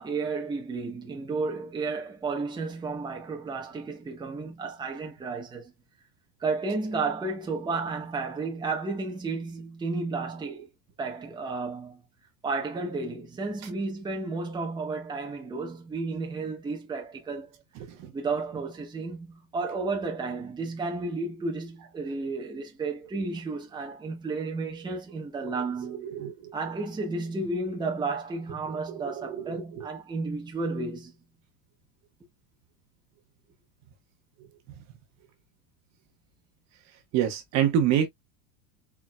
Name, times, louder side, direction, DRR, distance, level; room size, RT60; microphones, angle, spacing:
voice 1, 0.0-5.7 6.4-10.7 11.0-12.0 12.4-17.5 18.1-26.1 26.5-31.1, right 3 dB, 10° right, 1.2 m, -32 dB
voice 2, 26.0-26.5 28.7-29.9 37.1-38.1, right 9 dB, 40° right, 1.1 m, -27 dB
4.7 x 3.6 x 2.2 m
supercardioid pair, 145°, 43 cm